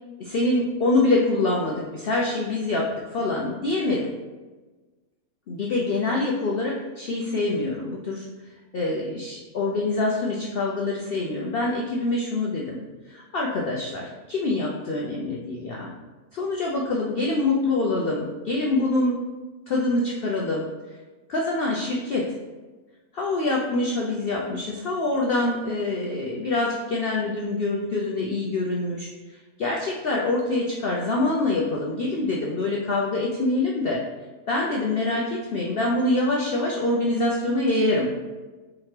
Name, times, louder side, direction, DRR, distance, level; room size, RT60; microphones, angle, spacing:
voice 1, 0.2-4.1 5.5-15.9 16.3-19.2 19.7-21.0 21.3-22.4 23.1-34.0 34.5-38.3, left 2 dB, 80° left, -2 dB, 0.5 m, -25 dB
4.3 x 3.7 x 3.2 m, 1.3 s
omnidirectional pair, 1.6 m